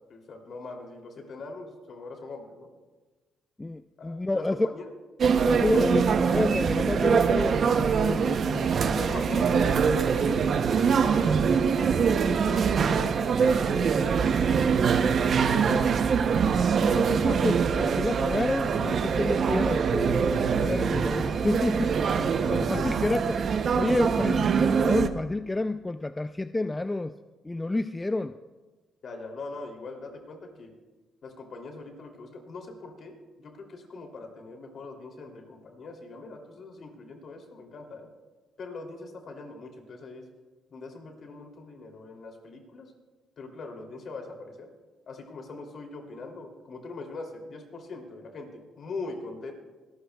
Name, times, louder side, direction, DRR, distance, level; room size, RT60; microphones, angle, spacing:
voice 1, 0.1-2.7 4.0-4.9 5.6-5.9 8.9-14.8 15.5-16.3 22.6-22.9 29.0-30.7 31.2-38.1 38.6-40.3 40.7-42.9 43.4-44.7 45.1-49.5, left 3 dB, 55° left, 3 dB, 2.9 m, -41 dB
voice 2, 3.6-4.7 5.5-9.0 16.9-22.0 22.5-23.4 23.7-27.1 27.4-28.4, left 2 dB, 15° left, 11 dB, 0.3 m, -29 dB
sound 1, 5.2-25.1, right 6 dB, 55° right, 0.7 m, -24 dB
26.0 x 12.5 x 2.3 m, 1.3 s
cardioid pair, 90°, 0 cm